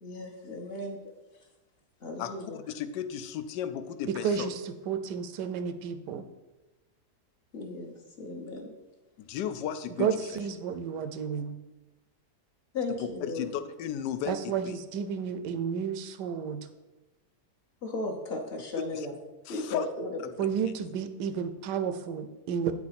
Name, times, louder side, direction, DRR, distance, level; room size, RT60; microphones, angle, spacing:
voice 1, 0.0-1.0 2.0-2.6 7.5-8.7 12.7-13.4 17.8-19.1 19.5-20.1, left 2 dB, 45° left, 1 dB, 1.0 m, -35 dB
voice 2, 2.2-4.5 9.2-10.4 13.0-14.7 18.8-19.1 19.4-19.9, left 9 dB, 90° left, 11 dB, 1.2 m, -35 dB
voice 3, 4.2-6.3 10.0-11.6 14.3-16.7 20.4-22.7, right 7 dB, 85° right, 10 dB, 1.2 m, -31 dB
8.6 x 4.8 x 4.1 m, 1.1 s
omnidirectional pair, 1.8 m